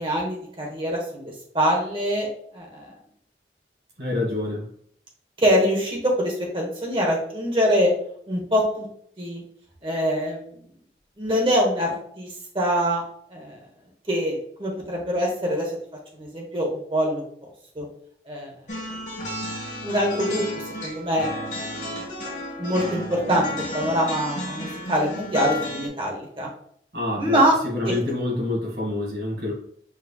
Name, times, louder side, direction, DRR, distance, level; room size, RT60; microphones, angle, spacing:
voice 1, 0.0-2.9 5.4-7.9 8.3-8.9 9.2-9.4 9.8-10.5 11.2-12.3 12.5-13.0 13.3-13.6 14.1-15.7 16.2-17.2 17.7-17.9 18.3-18.5 19.8-20.4 20.8-21.3 22.6-26.5 27.2-27.5, equal, 30° right, 0 dB, 1.2 m, -24 dB
voice 2, 4.0-4.7 26.9-29.5, left 2 dB, 70° right, -2 dB, 1.8 m, -27 dB
sound 1, 18.7-25.9, left 1 dB, 45° left, 1.3 m, -32 dB
5.7 x 3.3 x 2.3 m, 0.63 s
head